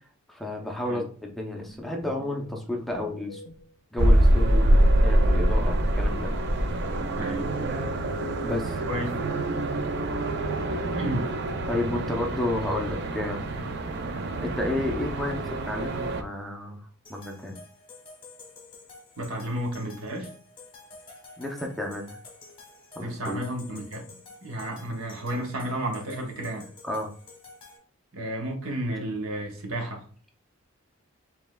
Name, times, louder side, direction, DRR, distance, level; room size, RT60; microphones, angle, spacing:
voice 1, 0.3-3.4 3.9-6.3 8.4-8.8 10.9-11.0 11.7-13.5 14.4-16.8 17.1-17.6 21.4-22.2 23.0-23.4 26.8-27.1, left 1 dB, ahead, 0.5 m, -31 dB
sound 1, 1.6-3.7 4.1-9.7 10.1-13.7, left 2 dB, 80° left, 0.5 m, -44 dB
sound 2, 4.0-16.2, right 1 dB, 50° right, 0.4 m, -25 dB
voice 2, 7.2-7.5 8.9-9.4 11.0-11.3 19.2-20.3 23.0-24.1 24.4-26.7 28.1-30.1, right 1 dB, 75° right, 1.0 m, -32 dB
sound 3, 17.1-27.8, left 3 dB, 25° left, 1.0 m, -49 dB
5.1 x 3.5 x 2.2 m
head